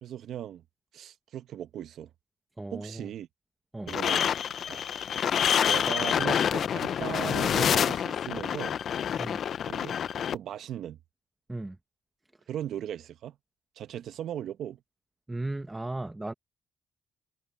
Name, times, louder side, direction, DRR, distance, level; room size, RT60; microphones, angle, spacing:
voice 1, 0.0-0.6 0.9-2.1 2.7-3.3 3.9-4.3 4.7-4.9 5.3-8.7 9.6-10.0 10.3-11.0 12.5-13.3 13.8-14.8, right 10 dB, 75° right, 0.9 m, -38 dB
voice 2, 2.6-3.1 3.7-4.0 9.2-9.4 11.5-11.8 15.3-16.3, right 2 dB, 15° right, 1.4 m, -36 dB
sound 1, 3.9-10.3, left 8 dB, 60° left, 0.5 m, -27 dB
cardioid pair, 90°, 0 cm